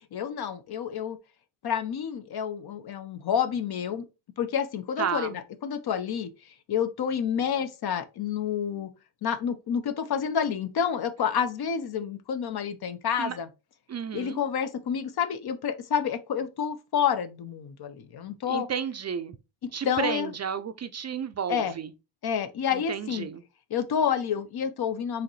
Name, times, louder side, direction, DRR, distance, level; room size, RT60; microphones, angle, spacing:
voice 1, 0.1-1.2 1.6-4.0 4.4-6.3 6.7-8.9 9.2-13.5 14.1-18.7 19.8-20.3 21.5-21.7 22.2-23.3 23.7-25.2, left 8 dB, 60° left, 0.7 m, -29 dB
voice 2, 5.0-5.4 13.2-13.4 13.9-14.4 18.5-19.4 19.7-21.9 22.7-23.4, right 7 dB, 40° right, 0.4 m, -32 dB
4.8 x 3.1 x 3.1 m
cardioid pair, 100°, 43 cm